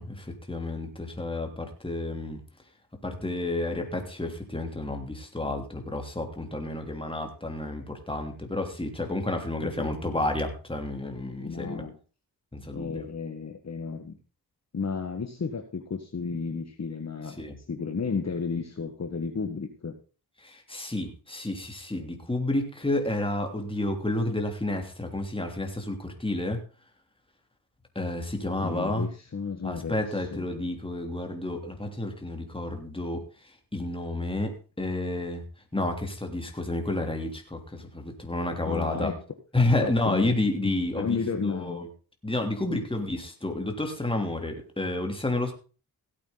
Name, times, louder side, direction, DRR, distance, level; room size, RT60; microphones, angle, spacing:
voice 1, 0.0-2.4 3.0-11.8 12.5-13.1 17.4-17.6 20.4-26.6 27.9-29.1 29.6-33.2 33.7-35.4 35.7-39.1 39.5-41.2 41.4-41.9 42.2-45.5, left 2 dB, 15° left, 3 dB, 3.2 m, -30 dB
voice 2, 9.6-10.0 11.4-12.0 12.7-14.2 14.7-17.4 17.7-20.0 28.4-30.5 38.6-39.2 39.8-40.4 40.6-41.9 42.7-42.8, left 5 dB, 40° left, 4 dB, 1.6 m, -33 dB
16.5 x 8.7 x 4.0 m, 0.36 s
cardioid pair, 85°, 39 cm